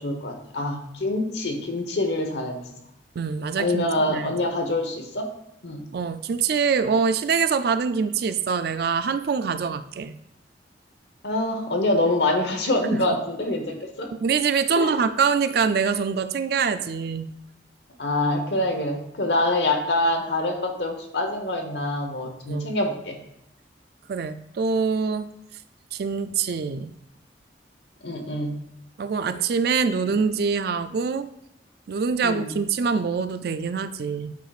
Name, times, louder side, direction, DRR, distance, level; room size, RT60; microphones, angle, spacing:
voice 1, 0.0-2.6 3.6-5.3 5.6-5.8 11.2-14.1 14.7-15.0 18.0-23.2 28.0-28.5 32.2-32.5, left 1 dB, 70° left, 4 dB, 1.1 m, -25 dB
voice 2, 3.2-4.3 5.9-10.1 12.9-13.0 14.2-17.3 22.4-22.7 24.1-25.3 25.9-26.9 29.0-31.3 31.9-34.3, right 5 dB, 60° right, 11 dB, 0.4 m, -24 dB
9.1 x 4.9 x 2.4 m, 0.79 s
head